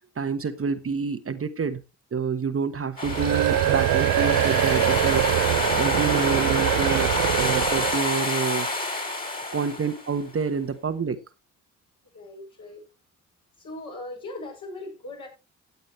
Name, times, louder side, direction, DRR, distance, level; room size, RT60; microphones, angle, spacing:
voice 1, 0.0-1.8 2.1-7.1 7.4-8.7 9.5-11.2, right 5 dB, 40° right, 1.2 m, -28 dB
sound 1, 3.0-10.2, left 2 dB, 25° left, 4.1 m, -27 dB
sound 2, 3.0-8.0, right 15 dB, 70° right, 0.7 m, -24 dB
voice 2, 12.1-12.8 13.6-15.3, left 2 dB, 55° left, 7.4 m, -39 dB
16.0 x 8.1 x 3.2 m
hypercardioid pair, 40°, 36 cm